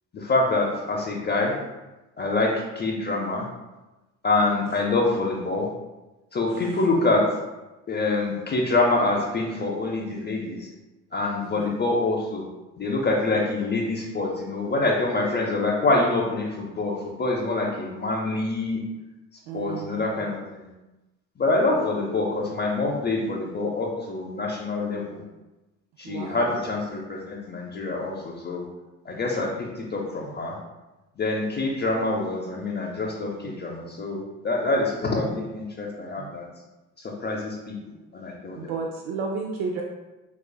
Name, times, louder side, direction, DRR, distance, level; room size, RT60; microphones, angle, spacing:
voice 1, 0.1-1.6 2.2-3.5 4.2-5.7 6.3-7.3 7.9-10.7 11.1-12.5 12.8-18.8 19.5-20.7 21.4-25.2 26.0-28.7 29.1-30.6 31.2-36.5 37.0-37.8 38.1-38.7, left 2 dB, 30° left, -2 dB, 0.6 m, -26 dB
voice 2, 6.5-6.9 11.4-11.7 19.5-20.2 26.0-26.6 30.2-30.4 33.4-33.5 36.2-36.3 38.5-39.8, right 4 dB, 80° right, 0 dB, 0.5 m, -33 dB
5.3 x 2.3 x 2.2 m, 1.1 s
supercardioid pair, 65°, 36 cm